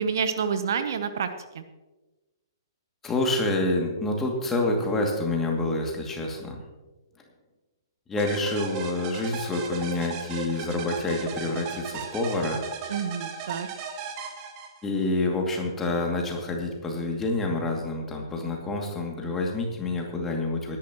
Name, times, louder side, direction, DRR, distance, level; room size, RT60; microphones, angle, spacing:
voice 1, 0.0-1.6 12.9-13.7, right 6 dB, 55° right, 10 dB, 0.9 m, -28 dB
voice 2, 3.0-6.6 8.1-12.6 14.8-20.8, left 2 dB, 15° left, 1 dB, 2.4 m, -27 dB
sound 1, 8.2-15.0, right 6 dB, 30° right, 1.7 m, -36 dB
20.0 x 11.0 x 3.0 m, 1.1 s
figure-of-eight pair, 120°, 2 cm